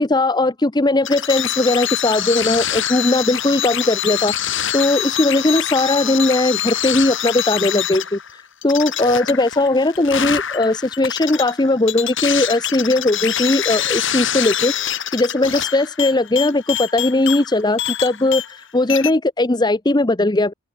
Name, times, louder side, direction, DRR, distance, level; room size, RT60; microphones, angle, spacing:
voice 1, 0.0-20.5, left 2 dB, 20° left, 0.8 m, -18 dB
sound 1, 1.0-18.6 18.9-19.1, left 10 dB, 60° left, 7.7 m, -25 dB
open air
head